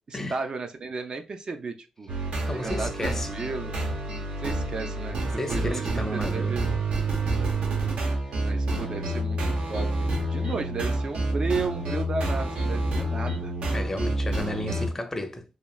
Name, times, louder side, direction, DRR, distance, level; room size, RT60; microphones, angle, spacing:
voice 1, 0.1-2.1 2.5-3.8 4.4-6.7 8.4-13.5, right 4 dB, 40° right, 0.3 m, -34 dB
sound 1, 2.1-14.9, right 2 dB, 80° right, 0.8 m, -28 dB
voice 2, 2.4-3.3 5.4-6.5 8.7-8.8 13.7-15.4, left 1 dB, 20° left, 0.5 m, -32 dB
3.0 x 2.3 x 2.3 m
cardioid pair, 100°, 2 cm